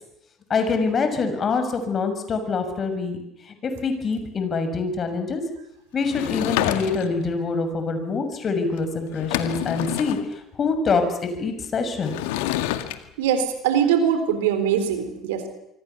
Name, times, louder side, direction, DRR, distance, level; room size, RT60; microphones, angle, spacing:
voice 1, 0.5-3.2 3.4-5.4 5.9-12.2, left 4 dB, 40° left, 7 dB, 6.4 m, -25 dB
Sliding door / Wood, 6.0-7.3 8.8-8.9 9.1-10.2 12.0-13.0, left 14 dB, 75° left, 2.0 m, -27 dB
voice 2, 13.2-15.5, right 8 dB, 75° right, 9 dB, 3.9 m, -22 dB
26.0 x 24.5 x 7.0 m, 0.82 s
hypercardioid pair, 65°, 0 cm